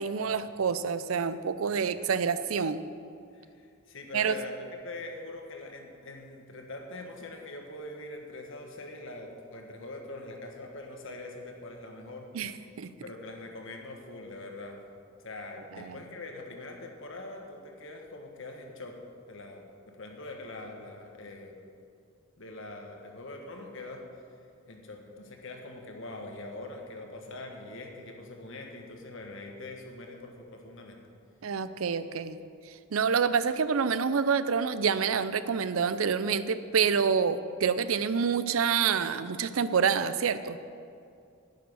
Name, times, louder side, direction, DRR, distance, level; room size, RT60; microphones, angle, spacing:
voice 1, 0.0-2.8 4.1-4.4 12.3-12.5 12.8-12.9 15.9-16.0 31.4-32.4 32.9-40.6, right 6 dB, 80° right, 13 dB, 0.5 m, -27 dB
voice 2, 3.3-12.6 13.0-14.8 15.2-19.0 19.3-21.6 22.4-24.2 24.7-31.0, left 2 dB, 65° left, 3 dB, 1.5 m, -43 dB
10.5 x 9.6 x 6.2 m, 2.4 s
head